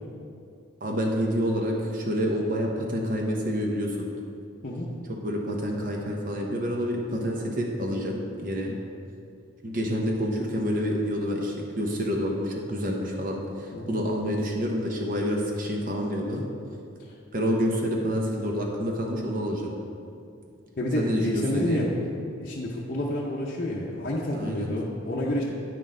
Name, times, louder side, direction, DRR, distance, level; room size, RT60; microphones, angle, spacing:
voice 1, 0.8-4.1 5.1-8.8 9.6-16.5 17.3-19.7 21.0-21.9 24.3-24.8, equal, 40° right, 0 dB, 0.8 m, -28 dB
voice 2, 20.8-21.9 22.4-25.4, left 1 dB, 45° left, -5 dB, 0.6 m, -29 dB
9.1 x 6.1 x 3.8 m, 2.5 s
head